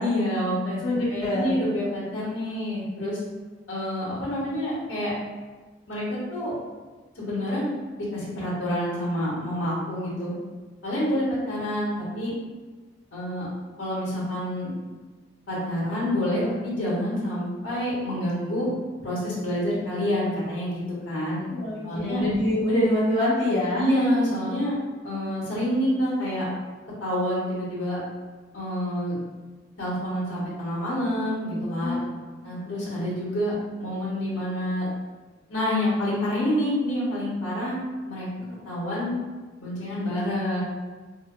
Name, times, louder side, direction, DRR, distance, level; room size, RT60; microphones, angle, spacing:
voice 1, 0.0-0.8 1.1-3.2 3.7-5.1 5.9-6.5 7.1-7.7 8.0-10.3 10.8-12.3 13.1-13.5 13.8-14.7 15.5-18.7 19.0-21.4 21.8-22.2 23.7-24.7 25.0-26.5 27.0-28.0 28.5-29.1 29.8-32.0 32.4-34.8 35.5-37.8 38.1-38.3 38.6-39.2 39.6-40.6, equal, 85° left, -8 dB, 1.4 m, -27 dB
voice 2, 0.8-1.5 21.5-23.8 31.8-32.6, left 1 dB, 65° left, -11 dB, 0.8 m, -25 dB
5.4 x 2.0 x 2.2 m, 1.3 s
head